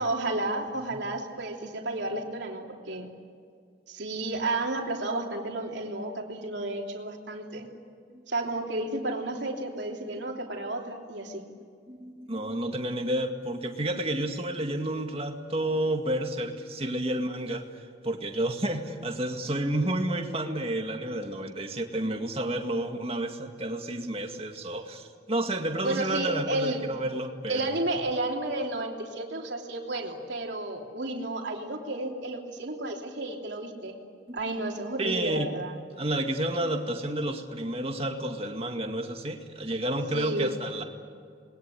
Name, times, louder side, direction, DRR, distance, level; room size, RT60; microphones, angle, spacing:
voice 1, 0.0-3.1 3.9-7.7 8.3-11.4 25.8-26.8 27.5-34.0 34.3-35.8 40.1-40.6, right 2 dB, 70° right, 1 dB, 3.1 m, -32 dB
voice 2, 11.9-17.6 18.0-27.8 34.3-34.4 35.0-35.5 36.0-40.8, right 1 dB, 30° right, 4 dB, 2.1 m, -30 dB
27.5 x 21.0 x 9.9 m, 2.2 s
head